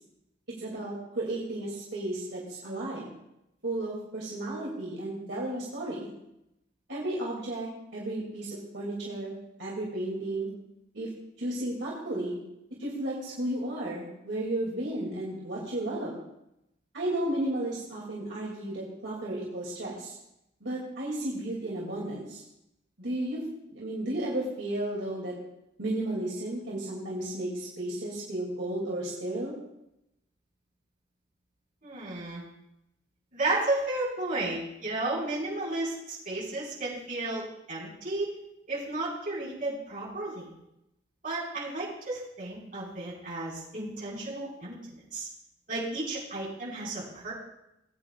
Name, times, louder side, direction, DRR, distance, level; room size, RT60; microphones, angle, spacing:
voice 1, 0.6-3.1 3.6-6.1 6.9-10.5 10.9-11.1 11.4-12.4 12.8-16.2 16.9-20.1 20.6-22.4 23.0-23.4 23.7-25.3 25.8-29.5, right 1 dB, 75° right, -5 dB, 2.7 m, -33 dB
voice 2, 31.8-32.4 33.3-38.4 38.7-40.5 41.2-45.3 45.7-47.3, right 2 dB, 45° right, -6 dB, 5.1 m, -33 dB
20.0 x 8.8 x 2.4 m, 0.85 s
head